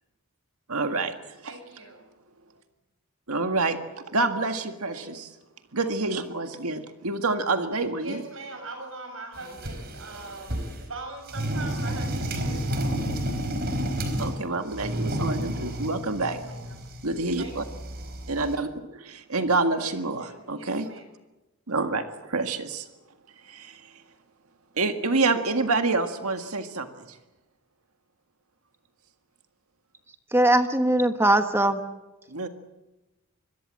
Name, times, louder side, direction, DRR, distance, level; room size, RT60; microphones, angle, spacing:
voice 1, 0.7-1.5 3.3-3.8 4.1-5.3 5.7-8.2 14.2-16.4 17.0-17.6 18.3-20.9 21.7-22.9 23.4-23.9 24.8-27.2 32.3-32.5, right 3 dB, 80° right, 6 dB, 1.8 m, -27 dB
voice 2, 1.4-2.0 4.9-5.2 7.7-13.0 16.2-16.7 17.4-17.6 19.8-21.1, right 2 dB, 65° right, 5 dB, 7.9 m, -42 dB
sound 1, 9.4-10.9 11.3-14.4 14.7-18.6, equal, 45° right, 4.4 m, -31 dB
voice 3, 30.3-31.8, right 1 dB, 10° right, 7 dB, 1.2 m, -20 dB
25.5 x 22.0 x 7.7 m, 1.0 s
head